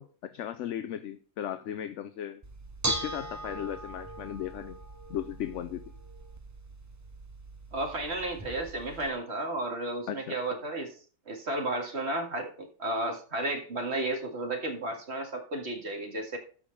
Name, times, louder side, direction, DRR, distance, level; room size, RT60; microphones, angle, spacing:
voice 1, 0.0-2.4 2.9-4.8 5.1-5.8 10.1-10.3, left 10 dB, 65° left, 11 dB, 0.9 m, -36 dB
Bell / Dishes pots and pans, 2.4-9.1, right 2 dB, 15° right, 0.6 m, -39 dB
voice 2, 7.7-11.0 11.3-16.4, right 2 dB, 50° right, 3 dB, 2.2 m, -33 dB
13.5 x 5.1 x 5.3 m, 0.41 s
omnidirectional pair, 1.5 m